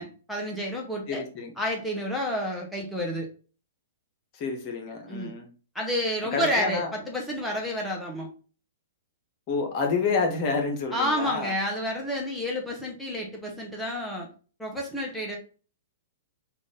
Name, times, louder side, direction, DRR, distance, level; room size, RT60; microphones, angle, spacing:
voice 1, 0.0-1.2 1.6-3.3 5.1-5.3 5.7-8.3 10.9-14.3 14.6-15.4, equal, 5° left, -2 dB, 0.8 m, -30 dB
voice 2, 1.1-1.5 4.3-5.5 6.3-6.9 9.5-11.5, left 4 dB, 40° left, 3 dB, 1.0 m, -28 dB
3.6 x 2.5 x 3.6 m, 0.36 s
figure-of-eight pair, 110°, 0 cm